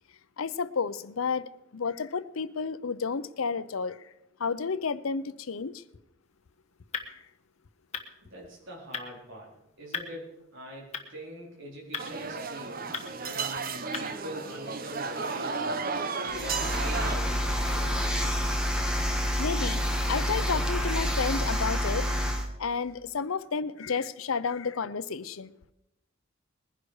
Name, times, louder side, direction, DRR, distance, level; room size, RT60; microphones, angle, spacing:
voice 1, 0.4-4.0 4.4-5.8 19.4-22.1 22.6-25.5, left 5 dB, 90° left, 0.7 m, -31 dB
sound 1, 6.2-14.3, left 6 dB, 35° left, 1.3 m, -43 dB
voice 2, 8.3-9.5 9.8-17.9, equal, 65° right, 4.0 m, -43 dB
sound 2, 12.0-17.2, right 4 dB, 45° right, 0.9 m, -33 dB
sound 3, 16.3-22.5, equal, 5° right, 1.7 m, -28 dB
21.0 x 10.5 x 4.9 m
head